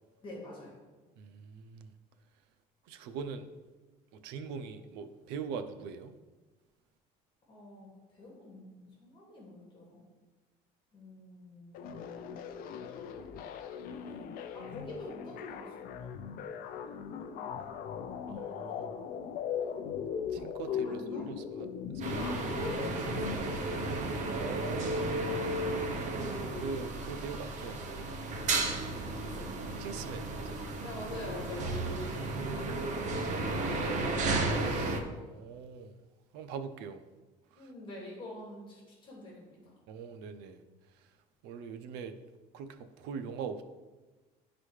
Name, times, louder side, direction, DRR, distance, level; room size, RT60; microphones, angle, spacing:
voice 1, 0.2-0.8 7.5-10.0 10.9-12.5 14.0-15.7 16.0-16.2 16.7-18.9 20.7-21.3 22.0-23.8 27.1-27.2 29.1-29.6 30.8-31.8 37.5-39.8, left 2 dB, 30° left, -4 dB, 2.1 m, -47 dB
voice 2, 1.2-1.9 2.9-3.5 4.2-6.1 18.3-18.9 20.3-21.7 22.1-22.3 24.3-25.2 26.6-28.1 29.8-30.6 33.2-33.8 34.6-35.9 36.3-37.0 37.5-37.7 39.9-40.6 41.4-42.2 42.5-43.6, right 6 dB, 85° right, 9 dB, 0.6 m, -42 dB
sound 1, 11.7-23.4, left 7 dB, 60° left, 0.5 m, -39 dB
sound 2, 22.0-35.0, right 2 dB, 45° right, 0.9 m, -33 dB
11.0 x 4.0 x 3.2 m, 1.2 s
cardioid pair, 130°, 17 cm